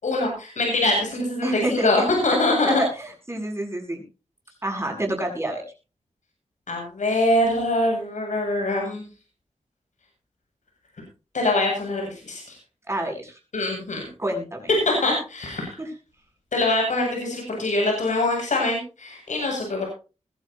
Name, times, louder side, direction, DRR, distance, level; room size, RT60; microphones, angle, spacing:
voice 1, 0.0-2.8 6.7-9.0 11.3-12.5 13.5-14.1 14.8-15.8 16.5-19.8, left 2 dB, 80° left, 1 dB, 7.8 m, -23 dB
voice 2, 1.4-2.1 2.7-4.0 4.6-5.6 12.9-13.3 14.2-14.7 15.8-15.9, right 1 dB, 20° right, 2 dB, 7.9 m, -28 dB
21.5 x 13.0 x 2.9 m, 0.33 s
wide cardioid pair, 80°, 12 cm